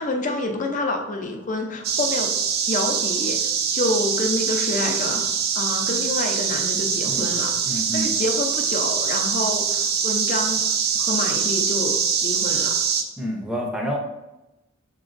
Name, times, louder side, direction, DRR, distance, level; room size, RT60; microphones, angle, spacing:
voice 1, 0.0-2.3 2.7-5.2 5.5-7.6 7.9-10.6 10.9-12.8, left 2 dB, 40° left, 3 dB, 0.5 m, -27 dB
sound 1, 1.8-13.0, right 7 dB, 55° right, 0.4 m, -23 dB
voice 2, 7.7-8.1 13.2-14.0, equal, 5° right, 0 dB, 0.6 m, -28 dB
6.8 x 3.0 x 2.5 m, 0.98 s
head